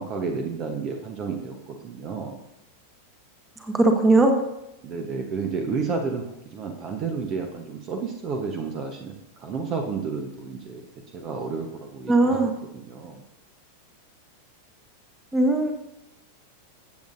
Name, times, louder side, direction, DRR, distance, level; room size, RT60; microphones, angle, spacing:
voice 1, 0.0-2.4 4.8-6.2 6.5-10.9 11.1-13.2, right 5 dB, 35° right, 4 dB, 1.1 m, -31 dB
voice 2, 3.6-4.4 12.1-12.5 15.3-15.7, right 2 dB, 10° right, 4 dB, 1.5 m, -19 dB
15.5 x 8.0 x 2.7 m, 0.87 s
figure-of-eight pair, 90°, 0 cm